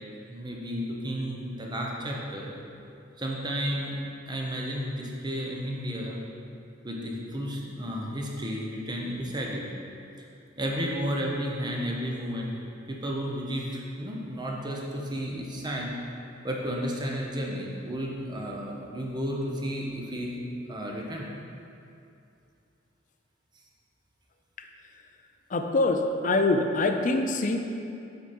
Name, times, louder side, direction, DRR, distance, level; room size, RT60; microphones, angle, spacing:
voice 1, 0.3-2.5 3.2-4.0 4.3-6.2 6.8-9.6 10.6-12.6 12.9-16.0 16.4-20.3 20.7-21.3, equal, 25° right, -1 dB, 0.9 m, -32 dB
voice 2, 25.5-27.6, left 2 dB, 45° left, 5 dB, 0.5 m, -24 dB
8.2 x 4.9 x 4.4 m, 2.6 s
head